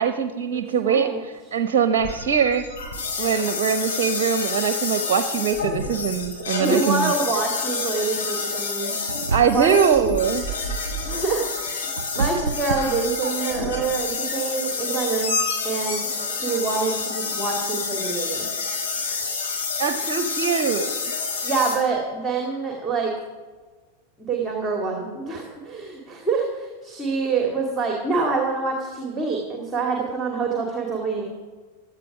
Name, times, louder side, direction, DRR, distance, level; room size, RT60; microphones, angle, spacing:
voice 1, 0.0-2.6 3.2-7.1 9.3-10.5 19.8-21.1, right 7 dB, 45° right, 10 dB, 0.8 m, -22 dB
voice 2, 0.5-1.2 6.6-8.9 9.5-9.8 11.1-11.8 12.1-15.4 15.6-18.5 19.1-19.3 21.4-23.1 24.3-31.2, right 4 dB, 15° right, 1 dB, 2.5 m, -26 dB
sound 1, 2.0-21.7, left 4 dB, 65° left, 5.1 m, -28 dB
sound 2, 9.1-9.9 11.4-13.7, right 6 dB, 70° right, 0.4 m, -29 dB
16.5 x 12.0 x 4.9 m, 1.4 s
figure-of-eight pair, 90°, 0 cm